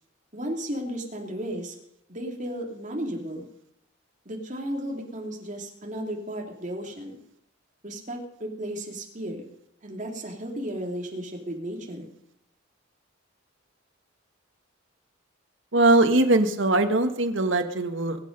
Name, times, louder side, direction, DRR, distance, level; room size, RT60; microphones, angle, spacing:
voice 1, 0.3-1.7 2.1-3.4 4.2-7.2 7.8-9.4 9.8-12.1, equal, 35° right, 1 dB, 2.9 m, -34 dB
voice 2, 15.7-18.2, right 2 dB, 70° right, 7 dB, 1.5 m, -21 dB
22.0 x 9.0 x 5.4 m, 0.76 s
head